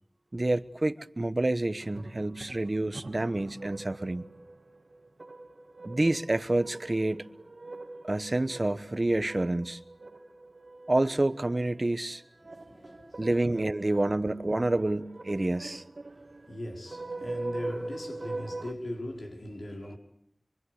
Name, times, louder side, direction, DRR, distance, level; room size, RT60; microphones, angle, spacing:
voice 1, 0.3-4.3 5.8-7.3 8.0-9.8 10.9-12.2 13.2-15.8, right 2 dB, 45° right, 1.1 m, -28 dB
sound 1, 1.8-18.7, right 2 dB, 70° right, 2.0 m, -43 dB
voice 2, 12.4-13.2 14.2-14.4 16.1-16.2 16.5-20.0, left 1 dB, 80° left, 5.2 m, -39 dB
26.5 x 24.5 x 8.3 m
wide cardioid pair, 55°, 0 cm